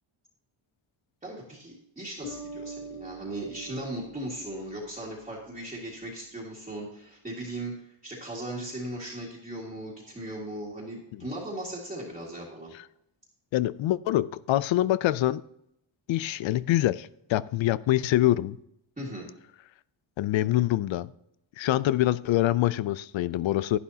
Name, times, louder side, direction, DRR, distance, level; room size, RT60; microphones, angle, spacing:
voice 1, 1.2-12.7 19.0-19.3, right 1 dB, 15° right, -6 dB, 1.9 m, -38 dB
Bass guitar, 2.2-5.7, right 3 dB, 90° left, 4.8 m, -44 dB
voice 2, 13.5-15.4 16.1-18.6 20.2-21.1 21.6-23.8, left 14 dB, 70° left, 19 dB, 0.5 m, -25 dB
11.5 x 11.0 x 2.8 m, 0.77 s
wide cardioid pair, 170°, 48 cm